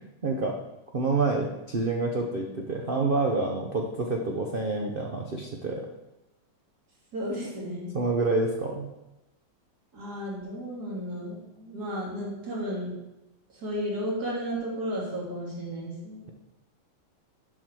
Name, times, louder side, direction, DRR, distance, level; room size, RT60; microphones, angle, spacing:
voice 1, 0.2-0.5 0.9-5.9 7.9-8.9, right 3 dB, 75° right, 1 dB, 0.5 m, -27 dB
voice 2, 7.1-7.9 9.9-12.9 13.5-16.3, equal, 55° right, -5 dB, 2.9 m, -33 dB
7.4 x 5.1 x 6.1 m, 0.96 s
omnidirectional pair, 2.1 m